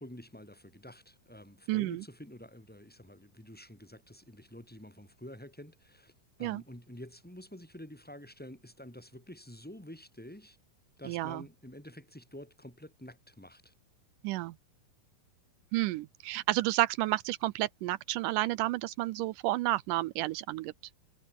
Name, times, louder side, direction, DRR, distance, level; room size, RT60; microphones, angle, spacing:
voice 1, 0.0-6.1 6.4-10.6 11.0-13.7, left 1 dB, 5° left, 2.1 m, -49 dB
voice 2, 1.7-2.0 6.4-6.6 11.1-11.4 14.2-14.5 15.7-20.7, right 17 dB, 80° right, 1.9 m, -31 dB
omnidirectional pair, 4.2 m